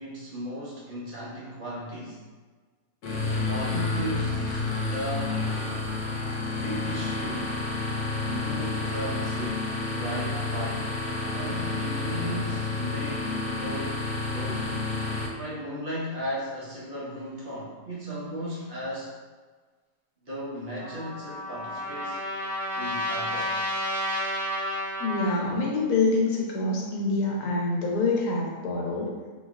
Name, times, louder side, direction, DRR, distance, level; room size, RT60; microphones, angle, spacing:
voice 1, 0.0-2.2 3.3-5.4 6.6-7.6 8.2-10.9 11.3-14.0 14.3-14.9 15.4-19.1 20.2-22.2 22.7-23.5, equal, 40° right, -7 dB, 1.0 m, -36 dB
sound 1, 3.0-15.3, left 3 dB, 60° left, 1.0 m, -30 dB
Trumpet, 20.8-25.5, equal, 10° right, 1.3 m, -31 dB
voice 2, 25.0-29.1, left 3 dB, 90° left, -2 dB, 1.3 m, -26 dB
3.8 x 3.1 x 2.4 m, 1.4 s
omnidirectional pair, 1.5 m